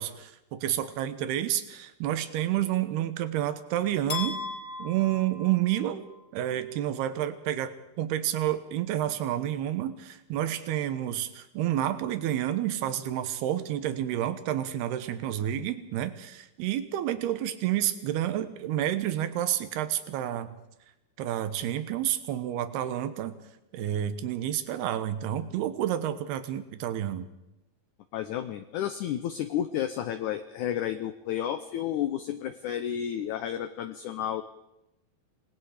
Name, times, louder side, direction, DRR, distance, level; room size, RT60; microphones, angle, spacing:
voice 1, 0.0-4.4 4.8-6.0 6.3-7.7 8.0-20.6 21.2-23.4 23.7-27.3, right 12 dB, 85° right, 10 dB, 3.2 m, -29 dB
sound 1, 4.1-6.2, left 5 dB, 25° left, 3.2 m, -37 dB
voice 2, 28.1-34.4, left 10 dB, 80° left, 9 dB, 1.8 m, -31 dB
27.5 x 19.5 x 5.0 m, 0.91 s
omnidirectional pair, 4.5 m